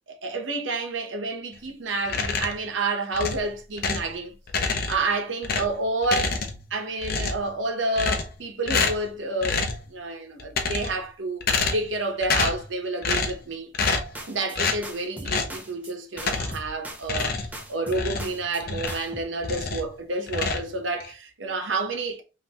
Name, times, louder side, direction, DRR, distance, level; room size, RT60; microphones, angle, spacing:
voice 1, 0.1-4.3 4.9-6.4 6.7-11.4 11.7-13.7 14.3-17.4 17.7-22.2, right 2 dB, 85° right, 1.0 m, -29 dB
sound 1, 2.1-2.7 3.1-4.1 4.5-5.1 5.4-6.7 7.0-7.5 8.0-8.4 8.7-9.1 9.4-9.8 10.4-11.0 11.4-12.0 12.2-12.7 13.0-13.4 13.7-14.2 14.6-14.8 15.3-15.6 16.2-16.7 17.0-19.1 19.4-19.9 20.3-21.1, left 4 dB, 55° left, 0.7 m, -27 dB
sound 2, 13.8-14.6 14.8-15.9 16.2-17.3 17.5-18.6 18.9-19.2, right 1 dB, 10° right, 0.7 m, -40 dB
5.3 x 2.8 x 2.9 m
head